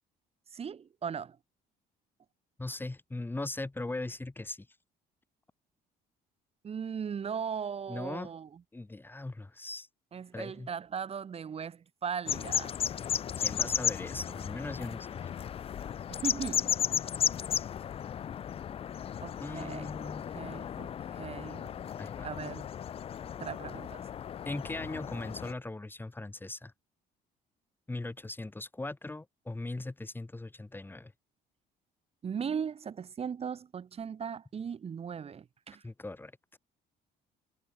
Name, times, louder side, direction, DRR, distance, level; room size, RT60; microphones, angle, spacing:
voice 1, 0.5-1.4 6.6-8.6 10.1-12.7 16.1-16.7 19.2-19.9 20.3-21.7 22.2-22.7 23.4-24.0 32.2-35.8, right 7 dB, 35° right, 1.5 m, -38 dB
voice 2, 2.6-4.7 7.9-8.3 8.7-9.9 10.3-10.7 13.4-15.3 19.4-20.2 22.0-22.3 24.5-26.7 27.9-31.1 35.8-36.6, left 2 dB, 10° left, 2.4 m, -39 dB
sound 1, 12.3-25.5, left 9 dB, 35° left, 0.4 m, -35 dB
cardioid pair, 110°, 17 cm